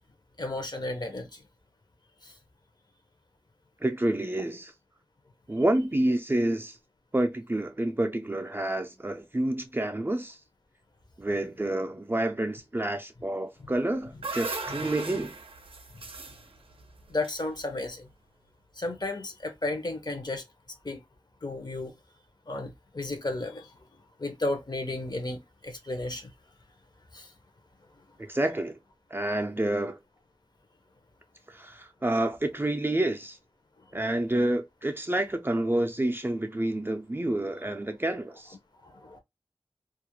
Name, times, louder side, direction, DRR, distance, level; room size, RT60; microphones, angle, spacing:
voice 1, 0.4-1.4 2.2-2.3 14.7-14.8 15.9-16.3 17.1-18.1 18.8-20.4 20.8-21.0 21.4-21.9 22.5-23.7 24.2-26.3 27.1-27.3 38.8-39.2, left 2 dB, 50° left, 0.6 m, -33 dB
voice 2, 3.8-4.7 5.5-6.8 7.1-10.4 11.2-15.4 28.2-28.8 29.1-30.0 31.5-33.4 33.9-38.6, right 1 dB, 25° right, 0.4 m, -28 dB
sound 1, 13.7-18.0, right 3 dB, 80° right, 0.5 m, -39 dB
2.4 x 2.1 x 2.8 m
wide cardioid pair, 60°, 9 cm